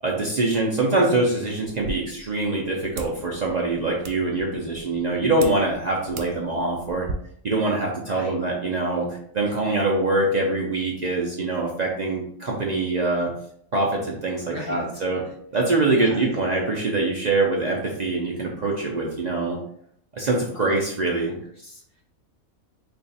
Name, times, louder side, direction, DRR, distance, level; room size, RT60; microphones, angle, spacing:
voice 1, 0.0-7.1 7.4-13.3 13.7-15.2 15.5-19.6 20.1-21.3, right 2 dB, 60° right, -2 dB, 0.4 m, -24 dB
sound 1, 1.6-7.1, right 3 dB, 80° right, 1.0 m, -40 dB
voice 2, 8.0-8.4 14.5-15.3 15.9-16.3 20.5-20.8 21.2-22.0, left 1 dB, 45° left, -2 dB, 0.8 m, -39 dB
3.3 x 2.4 x 4.0 m, 0.67 s
omnidirectional pair, 1.5 m